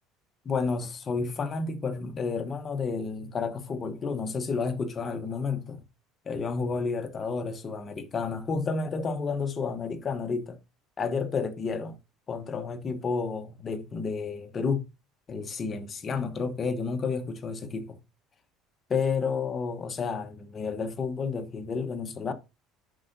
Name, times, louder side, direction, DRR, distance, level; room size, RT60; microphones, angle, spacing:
voice 1, 0.4-5.8 6.2-10.6 11.0-12.0 12.3-14.9 15.3-18.0 18.9-22.3, left 5 dB, 30° left, 1.1 m, -31 dB
10.0 x 5.6 x 2.7 m
cardioid pair, 130°, 0 cm